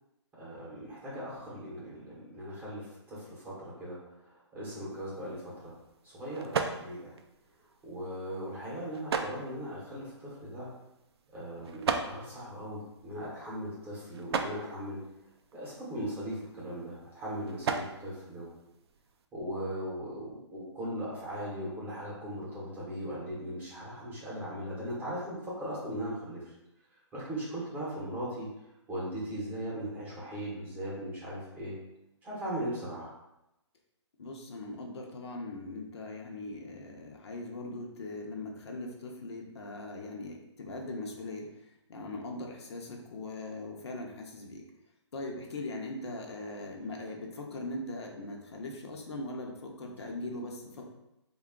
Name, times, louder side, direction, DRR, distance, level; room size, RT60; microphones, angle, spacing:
voice 1, 0.4-4.0 4.2-5.7 6.0-7.1 7.8-10.7 11.3-15.0 15.5-18.5 19.3-26.4 27.1-28.5 28.9-31.7 32.2-33.1, equal, 10° right, -7 dB, 0.9 m, -38 dB
sound 1, 4.9-19.3, right 5 dB, 60° right, 0.4 m, -39 dB
voice 2, 34.2-41.5 41.9-44.6 45.1-50.8, left 2 dB, 60° left, 0 dB, 0.7 m, -40 dB
3.6 x 2.3 x 3.6 m, 0.90 s
hypercardioid pair, 160°, 15 cm